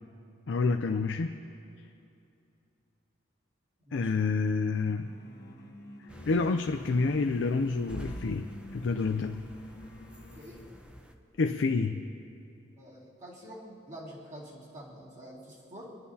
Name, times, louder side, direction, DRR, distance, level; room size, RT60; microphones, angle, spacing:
voice 1, 0.5-1.3 3.9-5.1 6.3-9.4 11.4-12.0, left 4 dB, 80° left, 6 dB, 0.5 m, -28 dB
voice 2, 3.8-4.3 10.3-10.6 12.8-16.0, equal, 40° right, -8 dB, 2.4 m, -47 dB
sound 1, 5.0-10.8, left 1 dB, 60° left, 1.1 m, -49 dB
sound 2, 6.1-11.1, equal, 5° right, 0.7 m, -47 dB
24.0 x 10.5 x 2.8 m, 2.7 s
head